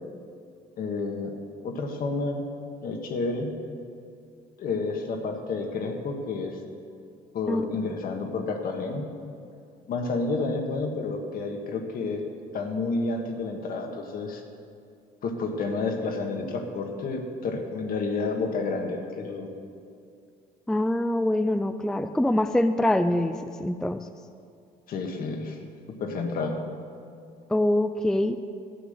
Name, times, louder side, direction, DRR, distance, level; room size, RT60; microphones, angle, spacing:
voice 1, 0.8-1.4 1.6-2.4 2.8-3.5 4.6-6.6 7.3-9.0 9.9-12.3 12.5-14.4 15.2-19.5 24.9-25.6 26.0-26.6, left 3 dB, 60° left, 3 dB, 1.6 m, -30 dB
voice 2, 20.7-24.0 27.5-28.4, left 1 dB, 5° left, 9 dB, 0.3 m, -24 dB
12.5 x 8.4 x 6.7 m, 2.4 s
cardioid pair, 110°, 17 cm